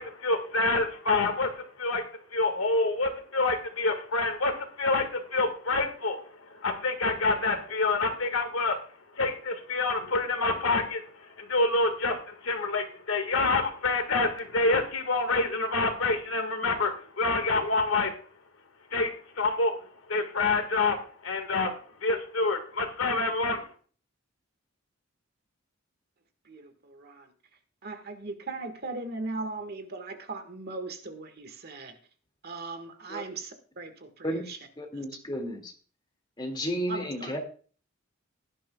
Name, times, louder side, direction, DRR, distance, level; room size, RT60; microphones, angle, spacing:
voice 1, 0.0-2.0 2.3-8.8 9.2-18.1 18.9-19.8 20.1-21.0 21.2-21.7 22.0-23.6, left 3 dB, 75° left, 7 dB, 1.7 m, -27 dB
voice 2, 26.4-27.3 27.8-32.0 32.4-34.6 34.9-35.0 36.9-37.4, right 3 dB, 50° right, 8 dB, 1.6 m, -38 dB
voice 3, 34.8-35.7 36.4-37.4, equal, 20° left, 3 dB, 2.2 m, -32 dB
17.0 x 11.0 x 2.3 m, 0.41 s
head